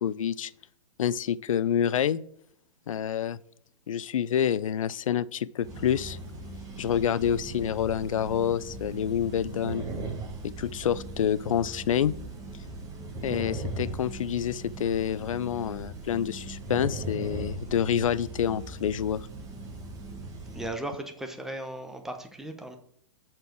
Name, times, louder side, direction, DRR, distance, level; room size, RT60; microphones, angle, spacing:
voice 1, 0.0-0.5 1.0-2.2 2.9-3.4 3.9-6.2 6.8-9.8 10.4-12.1 13.2-19.3, left 9 dB, 75° left, 19 dB, 0.4 m, -27 dB
sound 1, 5.6-20.7, right 2 dB, 20° right, 1.7 m, -39 dB
voice 2, 20.5-22.8, right 1 dB, ahead, 5 dB, 1.0 m, -36 dB
7.7 x 4.5 x 6.2 m, 0.69 s
hypercardioid pair, 115°, 17 cm